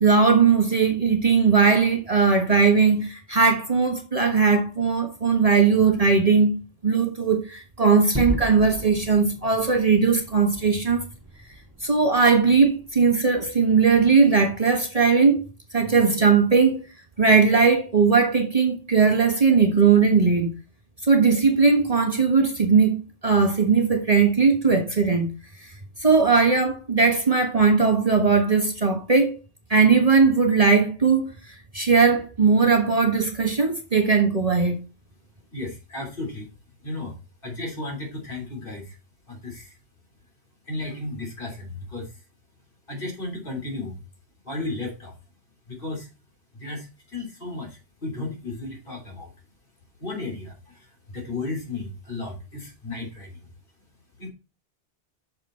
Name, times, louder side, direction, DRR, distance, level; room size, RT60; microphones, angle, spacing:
voice 1, 0.0-6.6 6.8-11.0 11.8-15.4 15.7-16.8 17.2-20.5 21.1-25.3 25.6-25.7 26.0-29.3 29.7-31.3 31.7-34.8, right 5 dB, 35° right, 1.3 m, -19 dB
Gunshot gunfire / Fireworks / Boom, 8.1-12.9, right 1 dB, 15° right, 2.0 m, -35 dB
voice 2, 35.5-36.5 36.8-37.1 37.4-39.0 39.3-39.8 40.7-42.1 42.9-44.0 44.4-45.1 45.7-46.1 46.5-49.3 50.0-53.4 54.2-54.3, left 2 dB, 50° left, 3.3 m, -34 dB
6.9 x 6.7 x 4.2 m
omnidirectional pair, 1.2 m